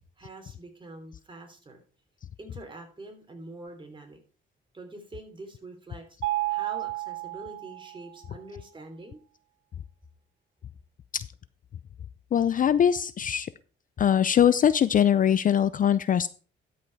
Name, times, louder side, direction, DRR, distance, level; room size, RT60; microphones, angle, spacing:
voice 1, 0.2-1.8 2.4-4.2 4.7-6.2 6.5-9.2, right 2 dB, 25° right, 3 dB, 3.2 m, -45 dB
Mallet percussion, 6.2-8.2, right 18 dB, 85° right, 0.6 m, -31 dB
voice 2, 12.3-13.5 14.0-16.3, left 9 dB, 45° left, 16 dB, 0.4 m, -22 dB
12.5 x 5.6 x 4.6 m, 0.39 s
cardioid pair, 90°, 20 cm